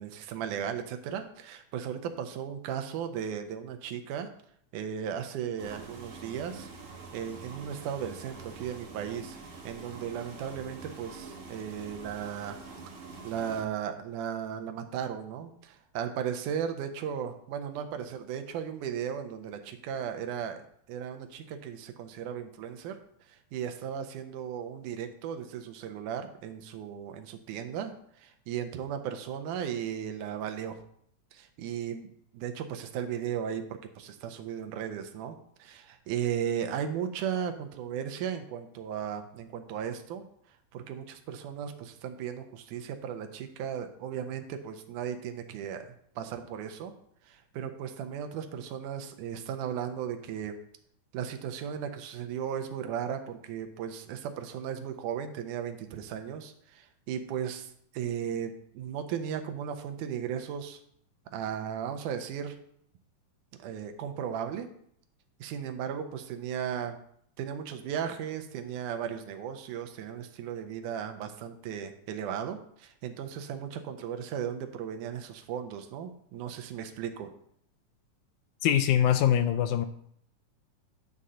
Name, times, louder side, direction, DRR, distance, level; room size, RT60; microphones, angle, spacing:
voice 1, 0.0-4.3 4.7-6.7 7.1-9.4 9.6-12.6 13.2-20.6 20.9-23.0 23.3-30.8 31.3-32.1 32.3-40.3 40.7-45.9 46.2-46.9 47.2-50.6 51.1-60.8 61.3-62.6 63.6-64.7 65.4-67.0 67.4-77.3, right 8 dB, 80° right, 6 dB, 2.2 m, -36 dB
sound 1, 5.6-13.6, right 4 dB, 55° right, 1.6 m, -46 dB
voice 2, 78.6-79.9, left 10 dB, 80° left, 10 dB, 1.9 m, -23 dB
9.7 x 3.8 x 5.5 m, 0.67 s
omnidirectional pair, 3.6 m